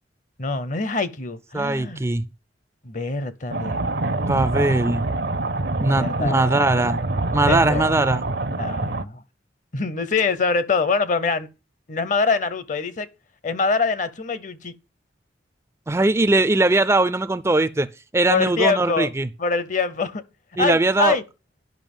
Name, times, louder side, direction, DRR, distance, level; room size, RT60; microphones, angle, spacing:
voice 1, 0.4-2.0 2.8-3.8 6.0-6.4 7.4-7.8 8.6-9.2 9.7-11.5 11.9-13.1 13.4-14.7 18.3-19.1 19.4-20.2 20.6-21.2, left 4 dB, 45° left, 0.8 m, -24 dB
voice 2, 1.5-2.2 4.2-5.1 5.8-7.0 7.3-8.2 15.9-17.9 18.1-19.3 20.6-21.2, right 2 dB, 15° right, 0.4 m, -20 dB
sound 1, 3.5-9.0, right 2 dB, 60° right, 0.7 m, -25 dB
10.5 x 5.6 x 5.4 m
head